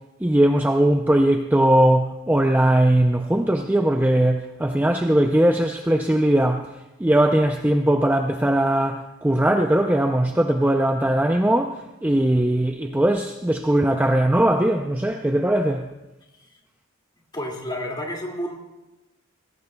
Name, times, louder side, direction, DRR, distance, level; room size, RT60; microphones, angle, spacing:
voice 1, 0.2-15.9, right 1 dB, 10° right, 0.4 m, -20 dB
voice 2, 17.3-18.6, equal, 20° left, 2.1 m, -30 dB
22.0 x 17.5 x 2.3 m
head